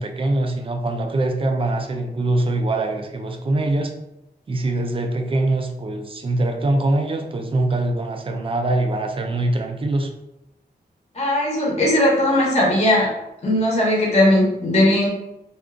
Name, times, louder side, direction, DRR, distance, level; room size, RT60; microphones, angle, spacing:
voice 1, 0.0-3.9 4.5-10.1, right 2 dB, 30° right, 4 dB, 0.4 m, -23 dB
voice 2, 11.1-13.1 13.4-15.1, left 1 dB, 40° left, -4 dB, 0.8 m, -18 dB
2.5 x 2.3 x 3.6 m, 0.88 s
wide cardioid pair, 150°, 17 cm